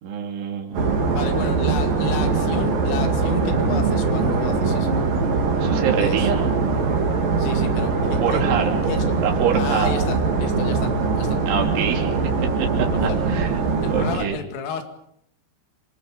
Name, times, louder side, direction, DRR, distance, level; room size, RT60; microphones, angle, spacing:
voice 1, 0.0-1.3 5.6-6.5 8.2-8.7 9.2-10.0 11.5-12.2 12.6-13.6 13.9-14.4, right 8 dB, 70° right, 1 dB, 5.3 m, -26 dB
sound 1, 0.7-9.9, equal, 30° right, 6.2 m, -40 dB
sound 2, 0.7-14.2, right 4 dB, 50° right, 4.2 m, -22 dB
voice 2, 1.1-5.0 6.0-6.3 7.4-8.4 8.9-9.2 9.5-11.4 12.9-13.2 13.8-14.8, left 6 dB, 80° left, 6 dB, 4.9 m, -32 dB
29.0 x 25.0 x 5.3 m, 0.72 s
omnidirectional pair, 5.7 m